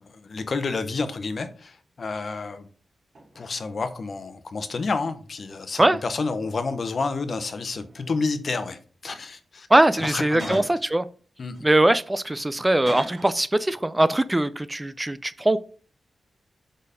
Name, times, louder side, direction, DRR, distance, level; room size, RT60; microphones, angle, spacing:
voice 1, 0.0-2.7 3.4-9.7 9.9-10.6 11.4-11.6, left 4 dB, 55° left, 0.9 m, -30 dB
sound 1, 2.6-2.7 3.1-3.7 4.4-6.0 6.3-7.3 7.7-8.4 9.0-9.3 10.0-10.9 11.5-13.5 13.7-14.0, right 2 dB, 55° right, 1.9 m, -43 dB
voice 2, 9.7-11.1 11.6-15.6, right 1 dB, 15° right, 0.3 m, -21 dB
5.1 x 4.5 x 5.0 m
wide cardioid pair, 90°, 0 cm